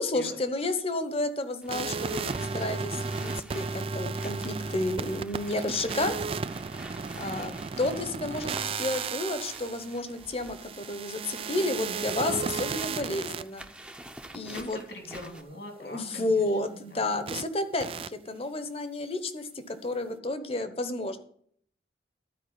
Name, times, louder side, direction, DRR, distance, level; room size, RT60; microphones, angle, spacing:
voice 1, 0.0-6.1 7.2-13.6 14.3-14.8 15.8-21.2, left 2 dB, 35° left, 10 dB, 1.0 m, -31 dB
sound 1, 1.6-15.4, right 1 dB, 5° right, 0.8 m, -48 dB
sound 2, 1.7-13.4 17.3-17.4 17.8-18.1, right 5 dB, 30° right, 0.3 m, -34 dB
voice 2, 14.5-17.0, left 1 dB, 75° left, 3 dB, 2.8 m, -43 dB
12.5 x 4.8 x 8.1 m, 0.62 s
head